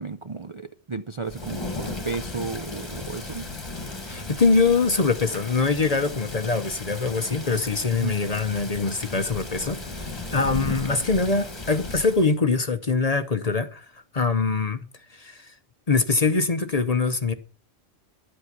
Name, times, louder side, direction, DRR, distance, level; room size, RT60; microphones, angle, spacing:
voice 1, 0.0-3.5 7.9-8.1, right 4 dB, 40° right, 0.4 m, -33 dB
Thunder / Rain, 1.2-12.3, left 2 dB, 20° left, 1.5 m, -35 dB
voice 2, 4.0-13.9 14.1-14.8 15.1-15.5 15.9-17.3, left 4 dB, 40° left, 0.7 m, -23 dB
11.5 x 8.2 x 5.9 m
omnidirectional pair, 1.3 m